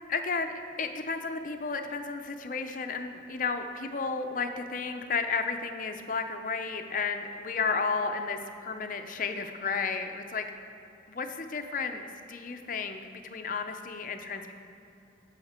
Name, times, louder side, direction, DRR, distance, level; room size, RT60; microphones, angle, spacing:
voice 1, 0.1-0.5 0.8-10.5 11.1-12.0 12.3-14.5, left 4 dB, 45° left, 6 dB, 0.6 m, -32 dB
15.5 x 5.8 x 4.3 m, 2.8 s
head